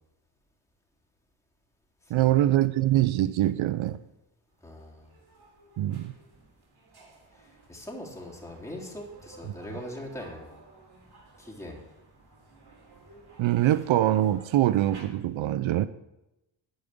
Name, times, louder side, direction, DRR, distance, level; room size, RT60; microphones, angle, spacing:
voice 1, 2.1-4.0 5.8-6.1 13.4-15.9, right 13 dB, 70° right, 14 dB, 0.6 m, -23 dB
sound 1, 4.5-15.0, right 3 dB, 50° right, 3.4 m, -54 dB
voice 2, 4.6-5.1 7.4-10.5 11.4-11.8, left 1 dB, 5° left, -3 dB, 3.5 m, -41 dB
10.5 x 5.3 x 8.5 m, 0.94 s
cardioid pair, 65°, 49 cm